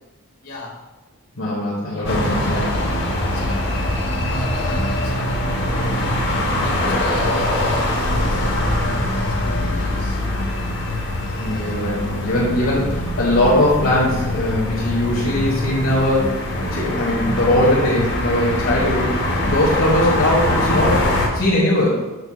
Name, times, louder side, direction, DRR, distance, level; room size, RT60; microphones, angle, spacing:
voice 1, 0.4-0.8 1.9-10.2, left 2 dB, 90° left, -4 dB, 2.0 m, -37 dB
voice 2, 1.4-2.6 11.4-19.2 19.5-22.0, left 1 dB, 70° left, -7 dB, 1.4 m, -20 dB
sound 1, 2.0-21.3, left 1 dB, 50° left, 1.1 m, -22 dB
6.9 x 6.8 x 2.3 m, 1.1 s
head